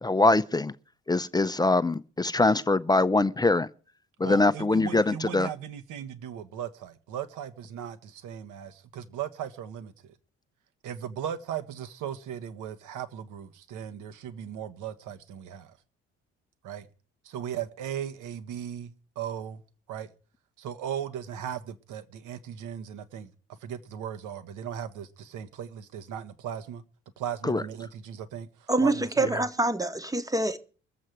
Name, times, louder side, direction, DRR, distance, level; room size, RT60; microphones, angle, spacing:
voice 1, 0.0-0.7 1.1-3.7 4.2-5.5 27.4-27.6, left 2 dB, 10° left, 0.6 m, -23 dB
voice 2, 4.2-9.9 10.8-15.8 16.6-16.9 17.2-19.6 19.9-20.1 20.6-23.3 23.6-26.8 27.2-29.5, right 9 dB, 60° right, 1.3 m, -37 dB
voice 3, 28.7-30.6, right 2 dB, 10° right, 1.1 m, -26 dB
22.5 x 7.6 x 4.8 m
figure-of-eight pair, 45°, 35 cm